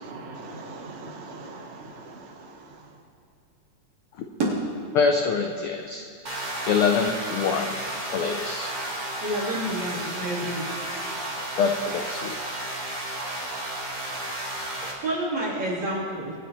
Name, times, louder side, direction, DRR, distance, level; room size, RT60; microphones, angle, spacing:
voice 1, 0.0-3.0, right 3 dB, 85° right, 1 dB, 0.5 m, -41 dB
voice 2, 4.9-6.0 6.7-7.8 8.1-8.7 11.5-12.4, left 5 dB, 80° left, 3 dB, 1.2 m, -24 dB
sound 1, 6.2-14.9, right 1 dB, 25° right, 0.9 m, -33 dB
voice 3, 9.2-10.7 15.0-16.3, right 1 dB, 70° right, -8 dB, 4.7 m, -29 dB
24.5 x 10.0 x 3.1 m, 2.2 s
omnidirectional pair, 3.3 m